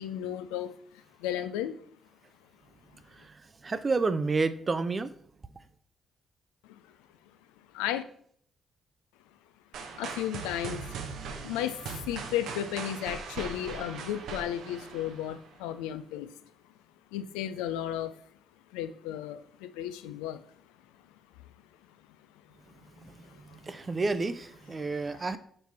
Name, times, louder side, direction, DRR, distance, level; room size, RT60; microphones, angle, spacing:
voice 1, 0.0-1.8 6.7-6.8 7.7-8.0 10.0-11.1 11.4-16.3 17.1-18.2 18.7-20.4 23.0-23.6 24.8-24.9 25.1-25.2, left 11 dB, 75° left, 11 dB, 0.4 m, -34 dB
voice 2, 3.1-5.1 23.0-23.2 23.6-25.4, right 3 dB, 35° right, 13 dB, 0.6 m, -30 dB
sound 1, 9.7-15.6, right 5 dB, 65° right, 0.9 m, -40 dB
5.8 x 5.4 x 4.3 m, 0.63 s
figure-of-eight pair, 40°, 0 cm